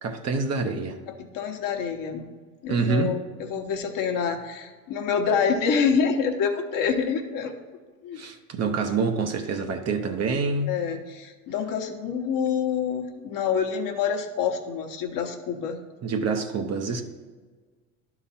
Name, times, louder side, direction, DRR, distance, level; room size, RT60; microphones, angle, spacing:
voice 1, 0.0-1.0 2.7-3.2 8.2-10.7 16.0-17.0, right 4 dB, 35° right, 6 dB, 0.8 m, -26 dB
voice 2, 1.1-2.2 2.6-7.5 8.0-8.2 10.7-15.8, left 6 dB, 45° left, 4 dB, 1.1 m, -27 dB
11.5 x 4.0 x 4.2 m, 1.4 s
hypercardioid pair, 90°, 45 cm